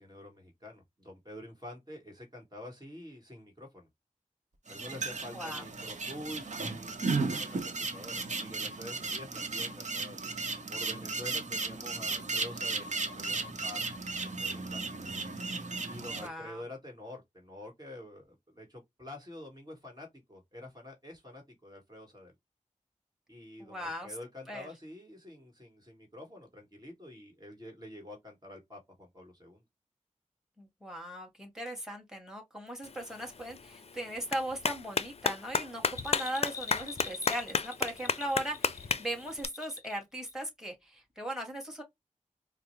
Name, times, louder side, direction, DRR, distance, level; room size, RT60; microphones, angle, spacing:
voice 1, 0.0-3.9 4.7-10.3 10.7-13.8 14.2-14.9 15.9-22.3 23.3-29.6 35.8-35.9 37.9-38.1, left 1 dB, 30° right, 1.5 m, -48 dB
sound 1, 4.7-16.3, right 4 dB, 60° right, 0.8 m, -35 dB
voice 2, 16.0-16.6 23.6-24.1 24.5-24.7 30.6-41.8, right 1 dB, 5° right, 1.8 m, -38 dB
Clapping, 32.8-39.5, left 5 dB, 50° left, 0.4 m, -34 dB
Bell, 35.9-40.0 40.3-40.4, left 6 dB, 25° left, 0.8 m, -44 dB
4.8 x 2.0 x 3.0 m
cardioid pair, 50°, 13 cm